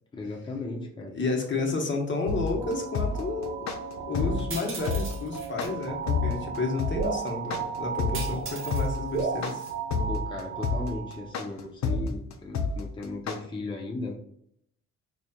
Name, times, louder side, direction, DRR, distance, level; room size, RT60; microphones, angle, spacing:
voice 1, 0.1-1.2 10.1-14.1, left 2 dB, 15° left, 0 dB, 0.6 m, -36 dB
voice 2, 1.1-9.6, left 3 dB, 40° left, 1 dB, 1.1 m, -31 dB
sound 1, 2.3-13.4, left 4 dB, 65° left, 0.6 m, -28 dB
sound 2, 2.6-11.3, right 6 dB, 85° right, 0.8 m, -35 dB
sound 3, 4.5-5.7 8.1-8.9 9.2-9.7, right 4 dB, 45° right, 0.9 m, -39 dB
4.1 x 3.2 x 2.3 m, 0.70 s
cardioid pair, 90°, 30 cm